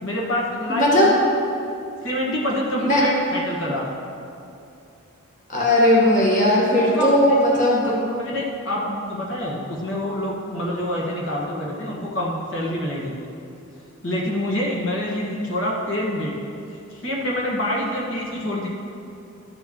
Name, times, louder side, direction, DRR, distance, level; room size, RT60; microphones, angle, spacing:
voice 1, 0.0-1.1 2.0-3.8 6.9-7.4 7.8-13.1 14.0-16.3 16.9-18.7, left 1 dB, 60° left, -4 dB, 1.6 m, -26 dB
voice 2, 0.7-1.1 2.8-3.0 5.5-8.0, left 1 dB, 35° left, -5 dB, 1.4 m, -17 dB
13.5 x 8.6 x 3.1 m, 2.7 s
head